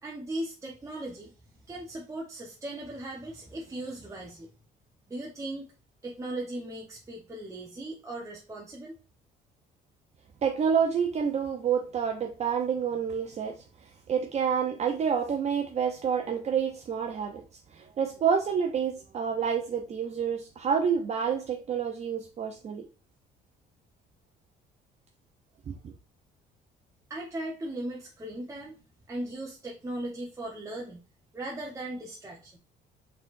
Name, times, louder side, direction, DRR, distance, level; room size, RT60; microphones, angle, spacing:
voice 1, 0.0-4.5 5.1-5.7 6.0-8.9 27.1-31.0 31.3-32.6, right 1 dB, 20° right, 1.0 m, -38 dB
voice 2, 10.4-13.6 14.1-17.4 17.7-22.9 25.7-25.9, right 7 dB, 40° right, 0.7 m, -28 dB
4.1 x 4.0 x 2.5 m
cardioid pair, 110°, 17 cm